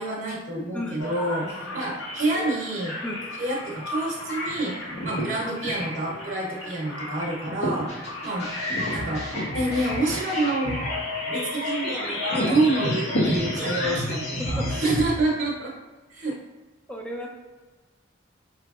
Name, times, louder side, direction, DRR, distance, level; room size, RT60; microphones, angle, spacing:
voice 1, 0.0-2.9 3.4-4.8 5.0-7.9 8.2-8.5 8.9-9.2 9.5-10.8 11.2-15.7 16.1-16.4, right 2 dB, 45° right, -4 dB, 1.0 m, -27 dB
voice 2, 0.5-1.1 1.4-1.9 3.0-3.2 14.4-14.7 16.9-17.3, left 1 dB, 5° left, -1 dB, 0.5 m, -35 dB
sound 1, 1.0-14.1, left 1 dB, 85° left, 1.0 m, -32 dB
sound 2, 7.9-15.1, left 1 dB, 35° left, 1.2 m, -31 dB
4.6 x 3.1 x 2.4 m, 1.2 s
head